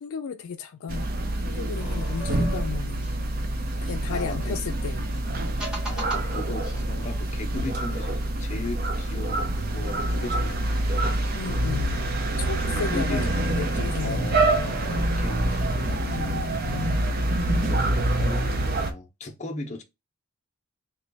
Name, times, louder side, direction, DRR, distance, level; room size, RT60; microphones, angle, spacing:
voice 1, 0.0-1.1 1.5-3.1 3.8-5.0 11.3-12.0 12.4-15.2 16.0-17.0, left 6 dB, 75° left, 0.4 m, -34 dB
sound 1, 0.9-18.9, right 1 dB, 45° right, 0.5 m, -26 dB
sound 2, 1.8-4.5 5.3-7.2, right 2 dB, 5° right, 0.8 m, -40 dB
voice 2, 4.1-4.6 5.9-11.0 12.6-17.1 17.7-19.8, left 2 dB, 30° left, 0.6 m, -38 dB
3.0 x 2.3 x 3.9 m
head